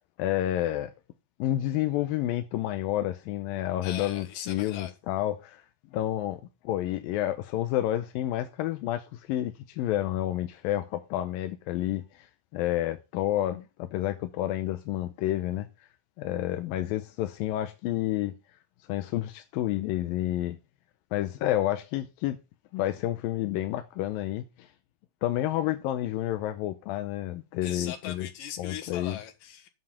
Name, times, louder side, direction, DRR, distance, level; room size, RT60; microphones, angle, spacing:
voice 1, 0.2-0.9 1.4-5.7 5.9-15.9 16.2-18.3 18.9-20.6 21.1-22.4 22.7-24.7 25.2-28.3 28.6-29.2, left 13 dB, 90° left, 2.5 m, -30 dB
voice 2, 3.8-4.9 27.6-29.7, left 9 dB, 75° left, 3.3 m, -39 dB
9.6 x 7.7 x 5.7 m
omnidirectional pair, 4.0 m